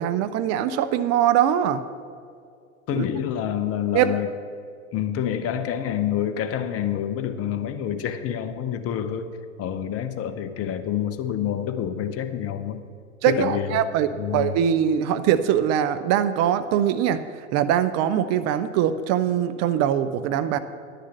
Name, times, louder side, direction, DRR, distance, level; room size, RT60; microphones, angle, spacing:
voice 1, 0.0-1.8 2.9-3.0 3.9-4.1 13.2-14.1 14.3-17.2 17.5-20.6, right 10 dB, 45° right, 12 dB, 0.6 m, -22 dB
voice 2, 2.9-4.3 4.9-12.9 13.3-13.8 14.1-14.6, left 9 dB, 40° left, 9 dB, 0.9 m, -27 dB
11.0 x 6.6 x 7.8 m, 2.3 s
figure-of-eight pair, 75°, 38 cm